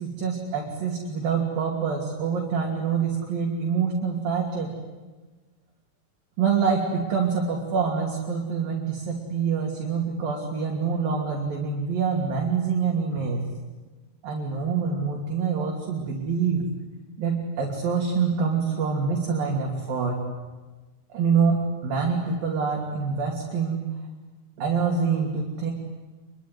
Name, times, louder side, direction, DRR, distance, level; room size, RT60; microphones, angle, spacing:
voice 1, 0.0-4.7 6.4-13.5 14.2-16.6 17.2-20.2 21.1-23.9 24.6-25.7, right 5 dB, 55° right, -1 dB, 4.2 m, -26 dB
26.0 x 23.0 x 9.7 m, 1.3 s
omnidirectional pair, 5.4 m